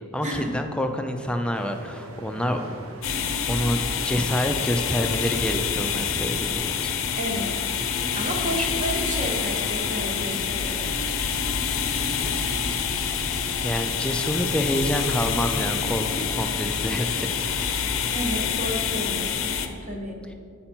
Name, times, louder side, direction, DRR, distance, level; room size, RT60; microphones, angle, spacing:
voice 1, 0.1-2.6 3.5-6.9 8.6-8.8 13.6-17.8, equal, 5° left, 5 dB, 0.3 m, -27 dB
sound 1, 1.5-18.4, right 2 dB, 75° right, 0.7 m, -41 dB
sound 2, 3.0-19.7, left 7 dB, 70° left, 0.5 m, -27 dB
voice 2, 7.1-7.5 8.2-10.9 18.1-19.6 19.8-20.2, equal, 35° right, 0 dB, 1.1 m, -31 dB
7.7 x 5.6 x 4.3 m, 2.4 s
head